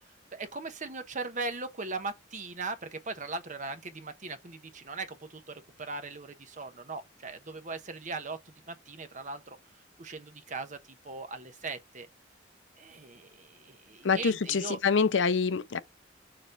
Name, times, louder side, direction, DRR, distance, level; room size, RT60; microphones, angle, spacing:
voice 1, 0.3-8.4 8.7-9.6 10.0-10.8 11.0-12.1 12.8-14.8, right 3 dB, 40° right, 0.9 m, -39 dB
voice 2, 14.0-15.8, left 5 dB, 70° left, 0.5 m, -26 dB
6.8 x 3.0 x 5.3 m
head